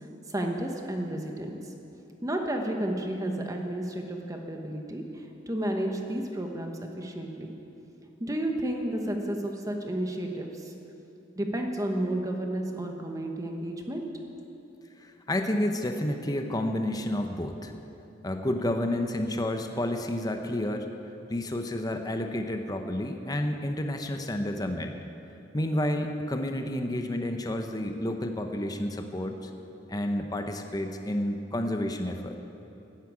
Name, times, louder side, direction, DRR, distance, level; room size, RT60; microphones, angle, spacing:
voice 1, 0.0-1.7 2.2-7.5 8.2-10.7 11.3-14.0, right 1 dB, 20° right, 2 dB, 1.1 m, -32 dB
voice 2, 15.0-17.7 18.2-20.9 21.3-25.0 25.5-29.5 29.9-32.4, left 1 dB, 20° left, 5 dB, 0.8 m, -30 dB
12.0 x 10.0 x 8.7 m, 3.0 s
head